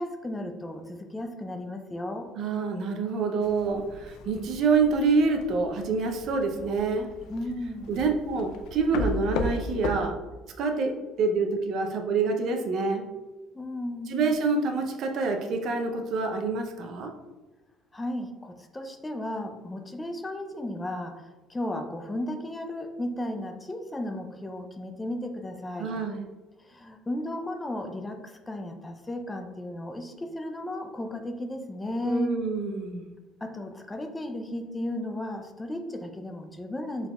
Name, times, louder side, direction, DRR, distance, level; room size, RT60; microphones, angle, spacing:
voice 1, 0.0-2.3 7.3-7.9 13.5-14.2 17.9-21.2 21.5-26.0 26.7-32.4 33.4-37.1, left 1 dB, 10° left, 6 dB, 0.4 m, -34 dB
voice 2, 2.4-7.1 7.9-10.2 10.6-13.0 14.1-17.1 25.8-26.2 32.0-33.0, right 4 dB, 55° right, 4 dB, 0.5 m, -27 dB
sound 1, 3.4-10.1, left 2 dB, 75° left, 0.4 m, -36 dB
4.5 x 3.4 x 2.3 m, 1.1 s
cardioid pair, 145°, 0 cm